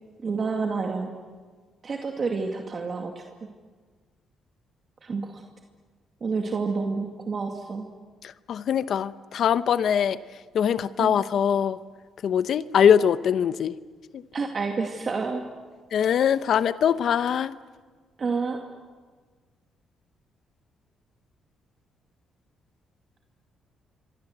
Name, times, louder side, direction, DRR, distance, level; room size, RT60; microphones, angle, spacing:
voice 1, 0.2-1.1 1.8-3.2 5.0-5.3 6.2-7.9 11.0-11.2 14.3-15.4 18.2-18.6, right 4 dB, 40° right, 2.3 m, -29 dB
voice 2, 8.5-10.2 10.5-11.8 12.2-13.8 15.9-17.5, left 8 dB, 65° left, 0.8 m, -22 dB
27.5 x 23.5 x 8.1 m
cardioid pair, 90°, 0 cm